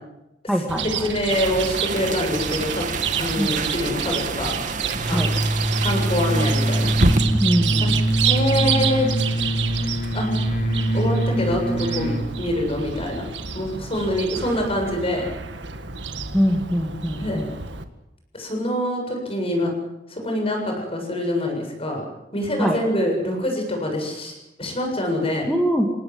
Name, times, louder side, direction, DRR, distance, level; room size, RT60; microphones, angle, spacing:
voice 1, 0.5-1.1 3.4-3.6 5.1-5.3 7.3-8.0 16.3-17.5 22.6-22.8 25.5-25.9, equal, ahead, 0 dB, 2.4 m, -23 dB
Chirp tweet, 0.7-17.8, right 7 dB, 75° right, 1.8 m, -29 dB
voice 2, 1.0-2.9 3.2-4.6 5.1-5.2 5.8-6.9 7.8-7.9 8.2-9.1 10.1-10.3 10.9-13.2 13.5-15.2 17.2-17.4 18.3-19.7 20.1-22.0 22.3-25.5, left 1 dB, 35° left, 2 dB, 7.4 m, -25 dB
sound 1, 1.3-7.2, right 3 dB, 45° right, 1.8 m, -28 dB
sound 2, 4.9-12.3, right 1 dB, 50° left, 4.4 m, -23 dB
27.0 x 18.5 x 7.9 m, 0.91 s
head